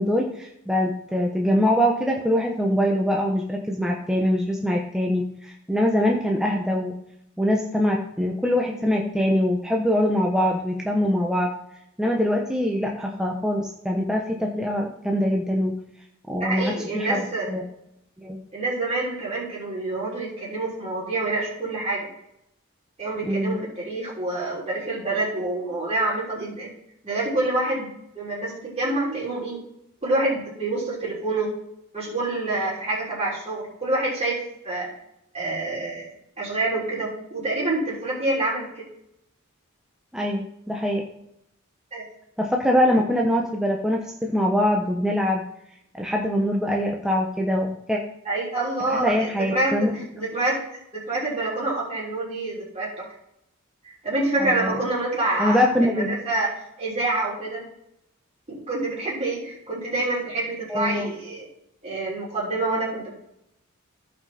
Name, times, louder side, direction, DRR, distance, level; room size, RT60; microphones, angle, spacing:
voice 1, 0.0-6.9 7.4-11.5 12.0-15.7 16.3-17.6 18.2-18.4 23.2-23.6 40.1-41.0 42.4-45.4 45.9-48.0 49.0-49.9 54.4-54.7 55.4-56.1 60.7-61.1, equal, 5° right, -1 dB, 0.9 m, -23 dB
voice 2, 16.4-17.5 18.5-22.1 23.0-26.7 27.0-29.6 30.0-31.5 31.9-34.9 35.3-36.1 36.4-38.8 41.9-42.0 48.2-50.6 50.9-53.1 53.8-57.6 58.5-61.5 61.8-63.1, right 2 dB, 30° right, -6 dB, 3.9 m, -27 dB
14.5 x 5.1 x 4.3 m, 0.79 s
head